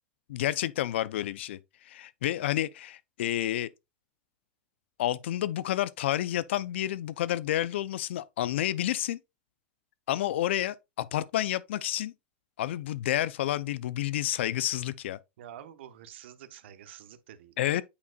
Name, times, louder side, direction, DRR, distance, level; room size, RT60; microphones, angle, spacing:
voice 1, 0.3-1.6 1.8-3.7 5.0-9.2 10.1-12.1 12.6-15.2 17.6-17.8, left 13 dB, 85° left, 0.4 m, -30 dB
voice 2, 15.4-17.7, right 10 dB, 80° right, 0.9 m, -48 dB
8.3 x 5.0 x 2.3 m
supercardioid pair, 145°, 6 cm